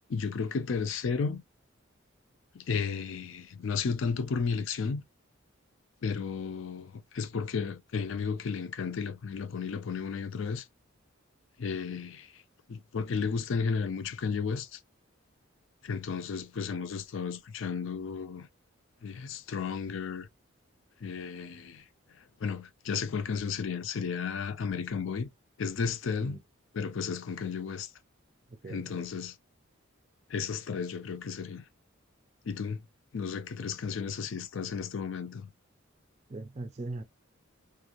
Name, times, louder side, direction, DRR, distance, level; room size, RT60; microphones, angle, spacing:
voice 1, 0.1-1.4 2.5-5.0 6.0-10.7 11.6-12.4 12.7-14.8 15.8-18.5 19.0-20.3 21.0-21.9 22.2-25.3 25.6-26.4 26.7-27.9 28.7-29.4 30.3-31.6 32.4-32.8 33.1-35.5, left 5 dB, 65° left, 0.4 m, -33 dB
voice 2, 28.6-29.0 36.3-37.0, right 2 dB, 30° right, 0.4 m, -40 dB
2.9 x 2.5 x 2.5 m
head